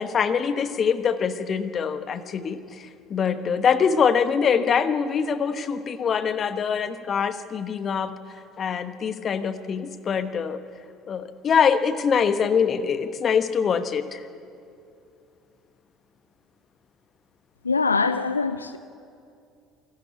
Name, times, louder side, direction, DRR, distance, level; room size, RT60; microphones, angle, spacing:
voice 1, 0.0-8.2 8.6-10.6 11.1-14.2, left 6 dB, 40° left, 11 dB, 1.2 m, -24 dB
voice 2, 17.6-18.8, left 4 dB, 90° left, 12 dB, 0.5 m, -23 dB
26.5 x 12.5 x 9.3 m, 2.5 s
figure-of-eight pair, 60°, 0 cm